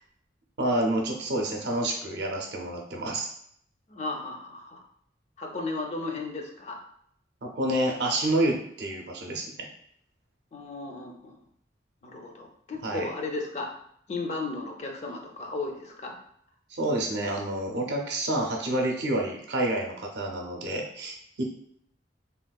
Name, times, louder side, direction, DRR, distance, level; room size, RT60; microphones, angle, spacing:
voice 1, 0.6-3.3 7.4-9.4 12.8-13.1 16.7-21.4, right 1 dB, 65° right, 1 dB, 0.5 m, -28 dB
voice 2, 3.9-4.8 5.4-6.8 10.5-11.4 12.0-13.7 14.1-16.1, left 3 dB, 40° left, 2 dB, 0.4 m, -35 dB
3.5 x 2.3 x 2.2 m, 0.67 s
head